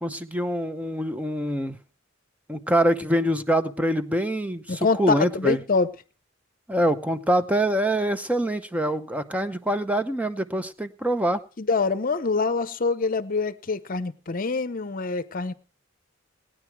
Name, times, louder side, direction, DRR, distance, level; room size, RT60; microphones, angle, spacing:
voice 1, 0.0-1.8 2.5-5.6 6.7-11.4, right 1 dB, 5° right, 0.7 m, -25 dB
voice 2, 4.7-5.9 11.6-15.5, left 4 dB, 45° left, 0.8 m, -25 dB
18.5 x 10.0 x 4.6 m
head